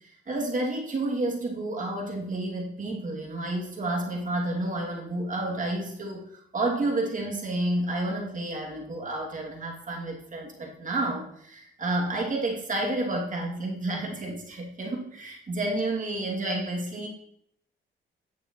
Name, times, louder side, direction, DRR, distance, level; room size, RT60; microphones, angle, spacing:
voice 1, 0.0-17.1, right 2 dB, 40° right, 0 dB, 2.9 m, -30 dB
10.0 x 7.9 x 3.2 m, 0.68 s
cardioid pair, 90°, 20 cm